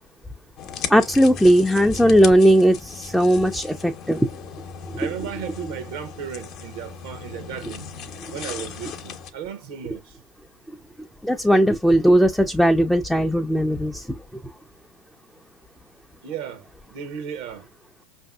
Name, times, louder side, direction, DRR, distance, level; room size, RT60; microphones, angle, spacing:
sound 1, 0.6-9.3, left 6 dB, 50° left, 0.8 m, -36 dB
voice 1, 0.9-4.3 11.2-14.1, equal, ahead, 0.5 m, -17 dB
voice 2, 5.0-7.9 8.3-10.2 16.2-17.7, right 8 dB, 65° right, 0.8 m, -35 dB
5.2 x 2.6 x 2.4 m
hypercardioid pair, 95°, 0 cm